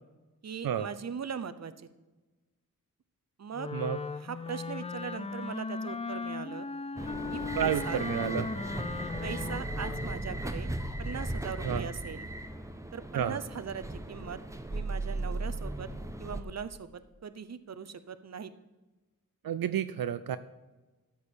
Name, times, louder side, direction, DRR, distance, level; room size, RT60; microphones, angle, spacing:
voice 1, 0.4-1.9 3.4-3.7 4.2-6.7 7.3-8.0 9.2-10.7 11.0-12.3 12.9-14.4 14.7-15.9 16.2-18.5, right 6 dB, 50° right, 12 dB, 0.7 m, -40 dB
Wind instrument woodwind instrument, 3.5-10.2, left 4 dB, 20° left, 0.3 m, -37 dB
sound 1, 7.0-16.4, right 1 dB, 10° right, 0.9 m, -37 dB
voice 2, 7.6-8.5 11.6-11.9 13.1-13.4 19.4-20.4, right 9 dB, 80° right, 12 dB, 0.5 m, -30 dB
13.0 x 4.7 x 8.4 m, 1.2 s
wide cardioid pair, 65°, 34 cm